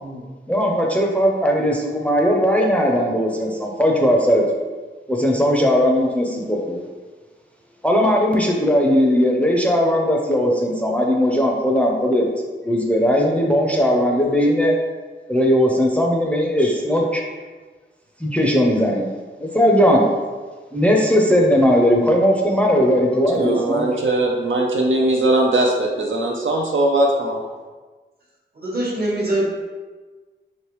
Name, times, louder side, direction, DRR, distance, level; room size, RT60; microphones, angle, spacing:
voice 1, 0.5-4.4 5.1-6.8 7.8-12.2 12.6-14.7 15.3-17.2 18.2-19.1 19.5-20.0 20.7-23.9, equal, 5° left, -1 dB, 0.5 m, -18 dB
voice 2, 23.3-27.4, right 1 dB, 75° right, -1 dB, 0.4 m, -20 dB
voice 3, 28.6-29.4, right 1 dB, 50° right, -4 dB, 1.0 m, -23 dB
3.2 x 3.0 x 3.0 m, 1.4 s
wide cardioid pair, 65°, 20 cm